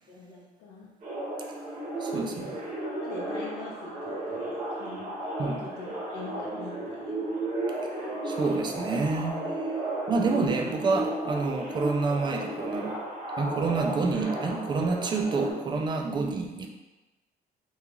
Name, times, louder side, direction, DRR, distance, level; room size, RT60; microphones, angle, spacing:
voice 1, 0.1-0.9 2.1-5.1 5.6-7.2, left 3 dB, 90° left, -4 dB, 0.6 m, -43 dB
sound 1, 1.0-15.5, right 1 dB, 45° right, 1.0 m, -34 dB
voice 2, 2.0-2.5 5.4-5.6 8.2-9.7 10.1-13.0 13.4-16.7, right 4 dB, 25° right, 2 dB, 0.4 m, -28 dB
2.4 x 2.3 x 3.0 m, 1.1 s
cardioid pair, 110°, 17 cm